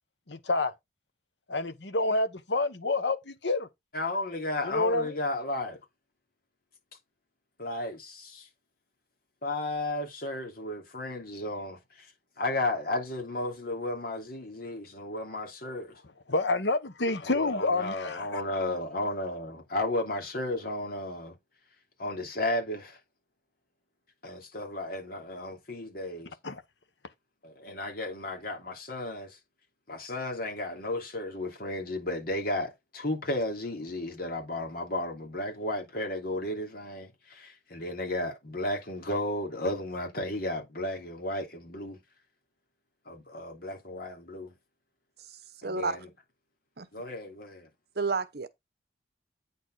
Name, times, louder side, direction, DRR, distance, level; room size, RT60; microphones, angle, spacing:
voice 1, 0.3-0.7 1.5-3.7 4.6-5.1 16.3-18.4 26.4-26.6, left 2 dB, 85° left, 1.2 m, -28 dB
voice 2, 3.9-5.8 7.6-8.5 9.4-12.1 12.4-16.0 17.2-21.3 22.0-23.0 24.2-26.3 27.4-29.4 29.9-42.0 43.0-44.5 45.6-46.1 46.9-47.7, left 1 dB, 55° left, 3.1 m, -34 dB
voice 3, 45.6-46.0 46.8-46.9 48.0-48.5, right 4 dB, 65° right, 1.0 m, -30 dB
9.2 x 4.5 x 4.8 m
head